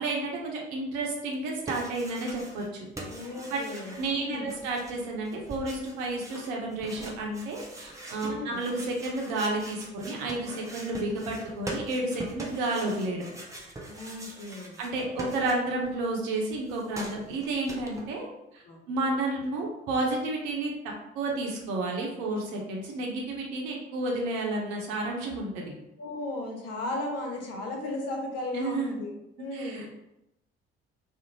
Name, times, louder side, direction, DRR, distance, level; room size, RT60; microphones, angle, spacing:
voice 1, 0.0-2.9 3.5-3.6 4.0-13.3 14.8-18.3 18.5-20.7 21.1-25.6 28.5-28.9 29.5-29.9, right 2 dB, 60° right, 0 dB, 0.7 m, -31 dB
sound 1, 1.3-2.7 3.0-15.9 16.2-18.0, right 1 dB, 10° right, 0.5 m, -42 dB
voice 2, 3.1-3.9 4.2-4.5 8.3-8.6 13.9-14.8 18.6-18.8 26.0-29.1 29.4-29.9, left 2 dB, 50° left, 2 dB, 0.7 m, -35 dB
2.5 x 2.0 x 2.9 m, 0.86 s
figure-of-eight pair, 45°, 32 cm